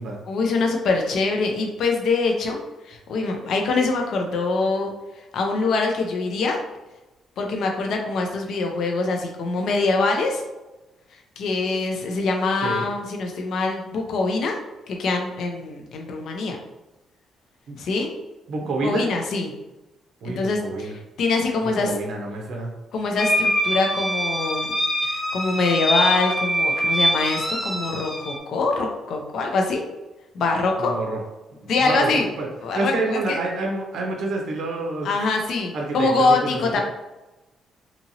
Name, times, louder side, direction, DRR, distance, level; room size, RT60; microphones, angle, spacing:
voice 1, 0.3-4.9 5.3-6.6 7.4-10.4 11.4-14.6 14.9-16.6 17.8-18.1 18.8-19.5 20.2-21.9 22.9-24.7 25.0-29.8 30.3-30.9 31.7-32.3 32.6-32.9 33.3-33.4 35.0-36.8, left 3 dB, 70° left, 2 dB, 0.4 m, -24 dB
voice 2, 18.5-19.0 20.2-20.9 21.6-22.7 30.8-31.2 31.6-32.5 32.7-35.1 35.7-36.8, right 2 dB, 75° right, 0 dB, 0.5 m, -28 dB
sound 1, 23.2-28.4, equal, 15° left, 0.5 m, -24 dB
2.8 x 2.6 x 2.7 m, 1.0 s
cardioid pair, 90°, 0 cm